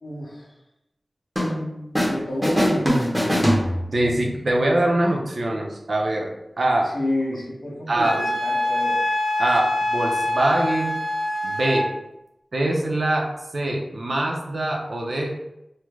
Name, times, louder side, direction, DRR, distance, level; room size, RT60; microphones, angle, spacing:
voice 1, 0.0-0.5 2.0-2.9 3.2-3.5 6.9-9.0, left 1 dB, 55° left, -5 dB, 1.2 m, -29 dB
sound 1, 1.4-2.2 2.4-4.2, equal, 5° right, 0.8 m, -22 dB
voice 2, 3.9-6.3 6.6-6.9 7.9-8.2 9.4-10.9 11.4-11.9 12.5-13.3 13.5-15.3, right 1 dB, 65° right, 0 dB, 0.6 m, -23 dB
Wind instrument woodwind instrument, 8.0-11.9, left 1 dB, 90° left, 0.6 m, -24 dB
3.2 x 2.1 x 3.5 m, 0.87 s
wide cardioid pair, 75°, 0 cm